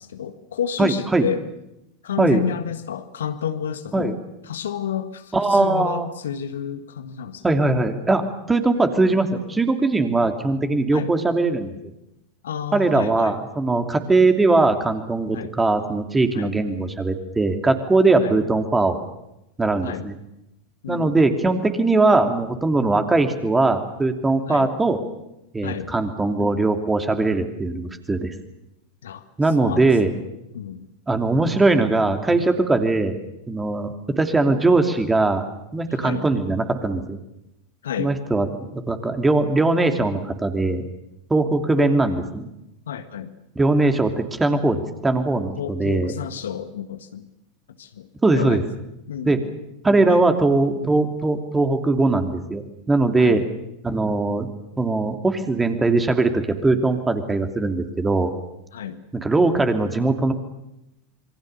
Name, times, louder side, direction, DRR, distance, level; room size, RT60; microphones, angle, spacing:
voice 1, 0.0-1.4 2.0-4.2 4.4-7.4 10.9-11.1 12.4-13.4 15.3-15.5 16.3-16.6 18.2-18.4 19.8-20.1 20.8-21.2 24.5-24.7 25.6-25.9 29.0-29.2 29.6-30.3 30.5-30.8 35.9-36.3 37.8-38.1 41.7-42.0 42.9-43.3 45.5-47.3 47.8-48.6 49.1-49.5 50.1-50.3 53.2-53.4 58.7-59.0, left 8 dB, 70° left, 9 dB, 1.7 m, -30 dB
voice 2, 0.8-1.3 2.2-2.4 3.9-4.1 5.3-6.1 7.4-8.2 8.5-11.7 12.7-19.0 19.6-20.1 20.9-25.0 25.5-28.3 29.4-30.1 31.1-33.2 33.5-35.4 35.7-37.2 38.0-38.5 38.7-40.9 41.3-42.5 43.6-46.1 48.2-48.6 49.2-49.4 49.8-53.4 53.8-54.5 54.8-58.3 59.2-60.3, right 3 dB, 15° right, 6 dB, 2.8 m, -20 dB
27.0 x 23.5 x 6.9 m, 0.88 s
figure-of-eight pair, 85°, 0 cm